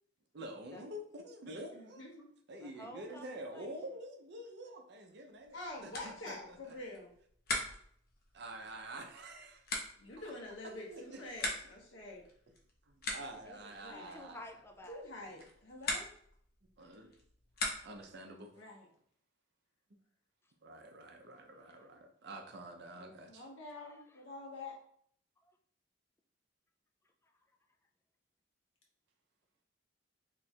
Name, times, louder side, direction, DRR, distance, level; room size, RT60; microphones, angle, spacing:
voice 1, 0.3-2.1 2.5-6.7 8.4-9.6 10.2-10.3 10.6-11.2 12.9-14.4 16.8-17.1 17.8-18.5 20.6-23.5, right 1 dB, 60° right, 3 dB, 0.6 m, -48 dB
voice 2, 1.7-2.3 5.5-7.1 10.0-12.2 13.8-14.2 14.9-16.1 18.5-18.9 23.0-24.8, left 2 dB, 75° left, -2 dB, 1.1 m, -47 dB
voice 3, 2.6-3.7 13.4-15.0 15.8-16.0 20.4-20.5 21.2-21.9 22.2-22.4 23.7-24.2 25.4-25.6 27.0-27.6, left 1 dB, 15° left, 4 dB, 0.3 m, -54 dB
sound 1, 5.4-18.2, left 2 dB, 50° left, 0.7 m, -44 dB
2.9 x 2.4 x 4.2 m, 0.63 s
head